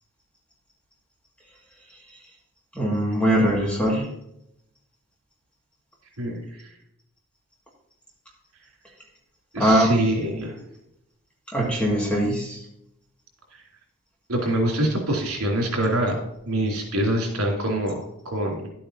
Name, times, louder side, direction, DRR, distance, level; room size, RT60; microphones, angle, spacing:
voice 1, 2.7-4.1 9.6-10.4 11.5-12.6, right 1 dB, 5° left, -3 dB, 2.2 m, -22 dB
voice 2, 9.5-10.5 14.3-16.2 16.5-18.7, right 1 dB, 80° right, 0 dB, 3.2 m, -25 dB
11.5 x 8.4 x 2.8 m, 0.77 s
head